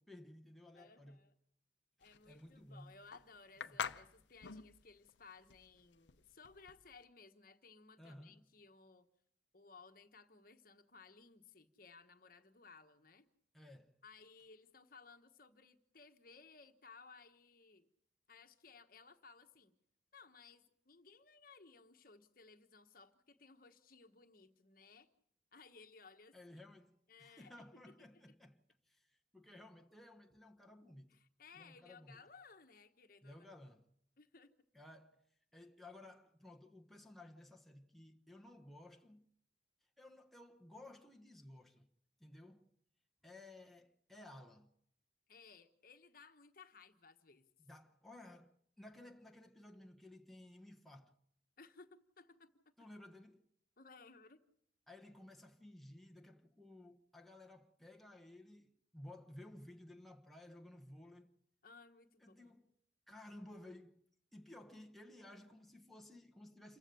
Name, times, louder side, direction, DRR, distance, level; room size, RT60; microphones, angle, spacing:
voice 1, 0.0-1.3 2.3-3.0 3.7-3.9 8.0-8.5 13.5-14.0 26.3-31.2 31.5-32.2 33.2-33.9 34.7-35.2 35.5-39.3 40.0-41.9 42.2-42.7 43.2-44.7 47.6-51.1 52.8-53.5 54.9-61.3 62.2-62.7 63.1-64.0 64.3-66.8, left 1 dB, ahead, 1.1 m, -56 dB
voice 2, 0.7-1.4 2.0-9.1 9.5-13.3 14.0-17.9 18.3-19.7 20.1-25.1 25.5-26.6 27.1-27.5 27.9-28.2 31.1-33.5 34.2-34.5 45.3-47.4 51.6-52.5 53.8-54.4 61.6-62.6, left 4 dB, 50° left, 1.3 m, -60 dB
sound 1, 2.0-7.0, left 6 dB, 80° left, 0.7 m, -46 dB
28.0 x 15.5 x 6.9 m
head